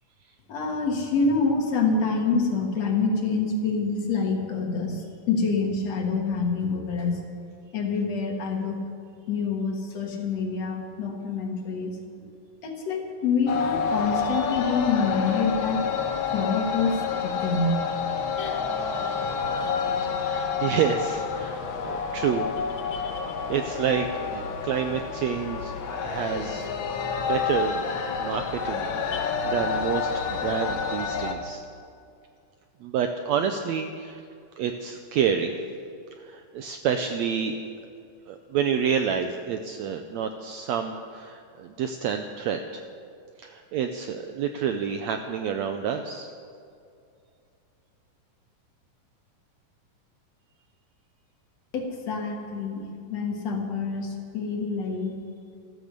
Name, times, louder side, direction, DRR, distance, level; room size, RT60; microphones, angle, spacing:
voice 1, 0.5-7.2 7.7-8.8 9.3-11.9 12.6-15.9 16.3-17.8 51.7-55.2, left 4 dB, 55° left, 2 dB, 2.5 m, -26 dB
sound 1, 13.5-31.3, left 6 dB, 90° left, 1.1 m, -29 dB
voice 2, 18.5-19.2 20.0-22.5 23.0-26.7 27.2-27.8 28.2-31.6 32.8-34.3 34.6-35.5 36.2-37.6 38.3-42.9 43.4-46.3, right 7 dB, 90° right, 6 dB, 1.5 m, -29 dB
14.0 x 14.0 x 6.7 m, 2.4 s
omnidirectional pair, 3.9 m